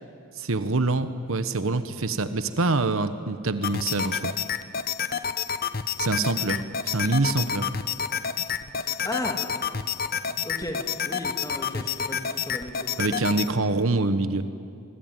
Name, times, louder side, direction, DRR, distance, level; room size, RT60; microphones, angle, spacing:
voice 1, 0.3-4.3 6.0-7.7 13.0-14.5, right 3 dB, 80° right, 11 dB, 1.1 m, -25 dB
sound 1, 3.6-13.5, left 7 dB, 45° left, 0.9 m, -29 dB
voice 2, 6.0-6.4 8.8-9.4 10.4-13.0, left 1 dB, 15° left, 3 dB, 2.6 m, -36 dB
24.5 x 24.5 x 9.0 m, 2.5 s
head